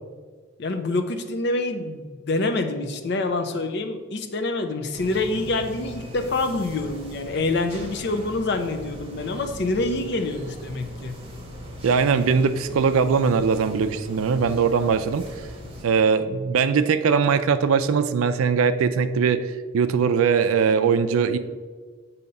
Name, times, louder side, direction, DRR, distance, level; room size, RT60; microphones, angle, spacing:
voice 1, 0.6-11.1, left 2 dB, 50° left, 7 dB, 0.5 m, -26 dB
sound 1, 4.9-15.8, equal, 25° right, 1.0 m, -39 dB
voice 2, 11.8-15.3 15.8-19.5 19.7-21.4, right 6 dB, 75° right, 11 dB, 0.4 m, -21 dB
6.9 x 2.8 x 5.2 m, 1.5 s
head